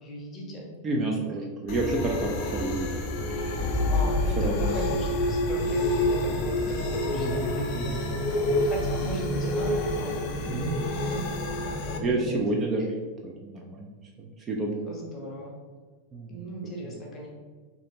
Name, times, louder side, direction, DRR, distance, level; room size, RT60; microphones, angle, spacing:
voice 1, 0.0-0.6 3.9-10.4 10.9-12.4 14.8-15.6 16.3-17.3, equal, 25° left, -2 dB, 0.9 m, -37 dB
voice 2, 0.8-3.0 3.4-4.7 6.5-6.6 7.1-8.0 10.4-10.7 11.9-13.9 14.2-14.8 16.1-16.9, right 2 dB, 25° right, -1 dB, 0.4 m, -31 dB
sound 1, 1.7-12.0, left 1 dB, 45° left, 0.4 m, -29 dB
sound 2, 3.6-10.8, left 2 dB, 60° right, 0.8 m, -32 dB
3.2 x 2.7 x 2.8 m, 1.4 s
figure-of-eight pair, 90°, 0 cm